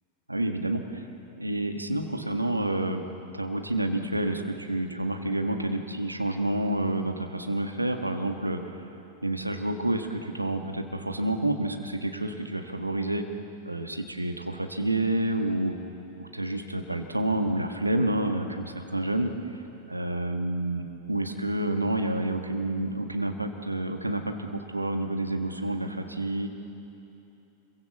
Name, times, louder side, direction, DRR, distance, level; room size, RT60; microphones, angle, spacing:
voice 1, 0.3-1.1 1.4-3.0 3.3-8.9 9.2-13.2 13.6-15.7 16.2-19.3 19.9-20.8 21.1-26.5, right 1 dB, 85° right, 5 dB, 1.7 m, -29 dB
26.5 x 23.0 x 7.4 m, 2.9 s
figure-of-eight pair, 90°, 0 cm